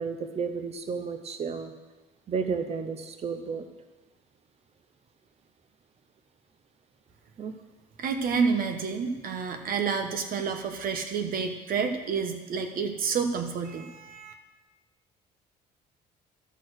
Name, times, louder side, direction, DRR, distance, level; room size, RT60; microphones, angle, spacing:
voice 1, 0.0-1.7 2.3-3.7 7.4-7.6, right 5 dB, 40° right, 8 dB, 0.8 m, -32 dB
voice 2, 8.0-14.3, right 5 dB, 60° right, 6 dB, 1.1 m, -29 dB
12.5 x 4.3 x 6.4 m, 1.2 s
cardioid pair, 110°, 17 cm